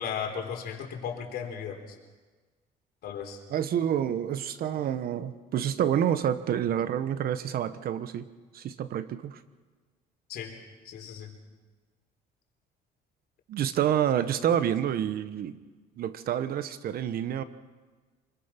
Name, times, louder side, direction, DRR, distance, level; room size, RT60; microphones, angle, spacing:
voice 1, 0.0-1.8 3.0-3.4 10.3-10.5 10.8-11.3, left 7 dB, 70° left, 2 dB, 4.1 m, -35 dB
voice 2, 3.5-8.3 8.5-9.4 13.5-15.6 16.0-17.4, right 10 dB, 60° right, 12 dB, 1.3 m, -28 dB
25.0 x 22.0 x 6.0 m, 1.3 s
cardioid pair, 110°, 17 cm